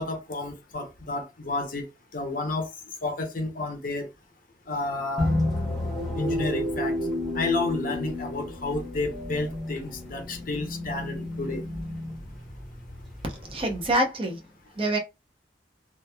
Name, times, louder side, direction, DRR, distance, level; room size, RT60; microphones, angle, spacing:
voice 1, 0.0-1.8 2.1-2.7 3.0-4.1 4.7-5.3 6.2-6.9 7.4-11.6, left 2 dB, 50° left, 0.7 m, -31 dB
sound 1, 5.2-13.9, left 1 dB, ahead, 0.9 m, -31 dB
voice 2, 13.5-14.4 14.8-15.0, right 1 dB, 30° right, 0.7 m, -25 dB
3.0 x 2.3 x 2.2 m
head